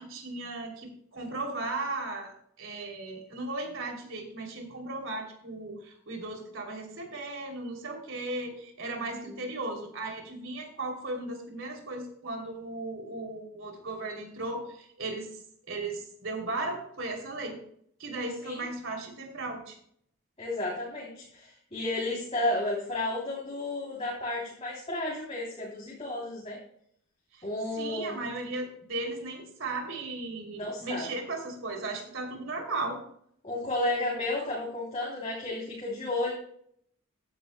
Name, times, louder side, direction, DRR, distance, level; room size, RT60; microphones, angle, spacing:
voice 1, 0.0-15.3 15.7-17.6 18.0-19.8 27.3-27.5 27.8-33.0, right 2 dB, 65° right, 2 dB, 3.1 m, -36 dB
voice 2, 20.4-26.6 27.4-28.2 30.6-31.1 33.4-36.3, left 2 dB, 30° left, -5 dB, 3.1 m, -32 dB
15.0 x 10.0 x 2.2 m, 0.66 s
head